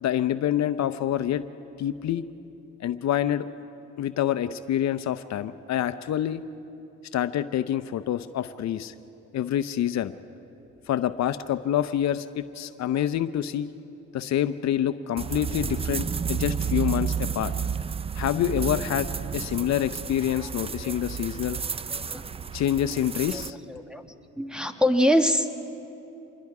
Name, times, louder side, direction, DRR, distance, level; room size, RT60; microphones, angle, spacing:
voice 1, 0.0-1.4 1.8-2.2 2.8-3.5 4.0-6.4 7.1-8.9 9.3-10.1 10.9-13.7 14.1-17.5 18.1-21.6 22.5-23.6, left 11 dB, 65° left, 12 dB, 0.6 m, -27 dB
sound 1, 15.2-23.5, right 6 dB, 20° right, 0.4 m, -31 dB
voice 2, 21.9-22.3 23.3-23.4 23.7-24.0 24.4-25.5, equal, 5° right, 6 dB, 1.3 m, -24 dB
26.5 x 21.5 x 4.8 m, 2.9 s
cardioid pair, 90°, 30 cm